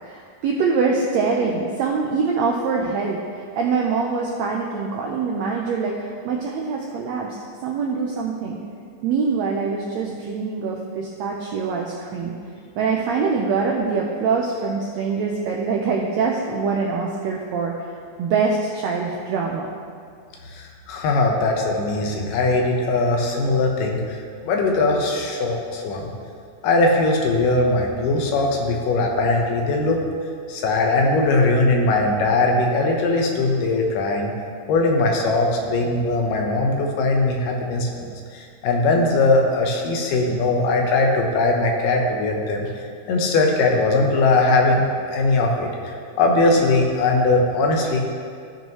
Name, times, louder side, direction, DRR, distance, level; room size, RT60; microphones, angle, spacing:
voice 1, 0.0-7.4 7.6-8.6 9.0-12.4 12.8-17.7 18.2-19.7, right 5 dB, 90° right, -1 dB, 1.5 m, -24 dB
voice 2, 20.5-24.2 24.4-26.1 26.6-30.0 30.5-34.3 34.7-42.7 43.1-48.0, left 2 dB, 80° left, 1 dB, 2.5 m, -20 dB
16.0 x 5.4 x 3.0 m, 2.3 s
omnidirectional pair, 3.9 m